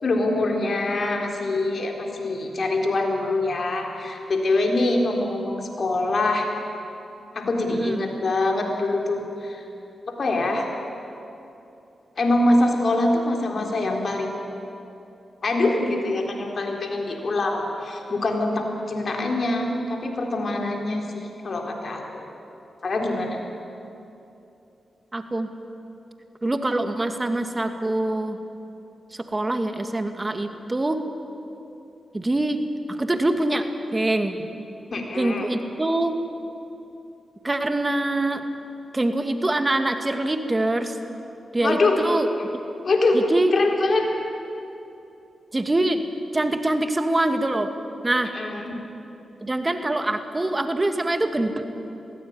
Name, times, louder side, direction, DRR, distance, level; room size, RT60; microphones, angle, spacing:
voice 1, 0.0-6.5 7.3-9.6 10.1-10.7 12.2-14.4 15.4-22.3 22.8-23.4 34.9-35.5 41.6-42.0 42.8-43.2 43.5-44.1 48.3-48.7, left 2 dB, 60° left, 2 dB, 3.8 m, -24 dB
voice 2, 7.7-8.0 25.1-25.5 26.4-28.4 29.1-31.0 32.1-32.6 32.9-33.7 33.9-34.5 35.2-36.2 37.4-38.4 38.9-41.0 41.5-42.3 43.1-43.5 45.5-46.0 46.3-47.7 48.0-48.3 49.4-51.6, right 2 dB, 30° right, 7 dB, 2.3 m, -24 dB
22.0 x 16.0 x 9.7 m, 2.9 s
supercardioid pair, 40°, 0 cm